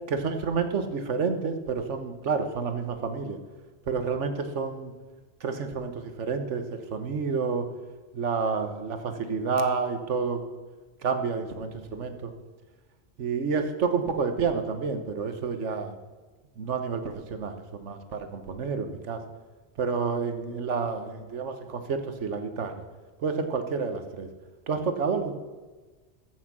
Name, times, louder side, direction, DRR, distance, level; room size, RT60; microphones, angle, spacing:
voice 1, 0.1-3.4 3.9-4.9 5.4-7.7 8.1-10.4 11.0-12.3 13.2-15.9 16.6-19.2 19.8-22.8 23.2-24.3 24.7-25.3, right 5 dB, 85° right, 8 dB, 1.4 m, -29 dB
14.5 x 6.5 x 6.0 m, 1.3 s
omnidirectional pair, 1.2 m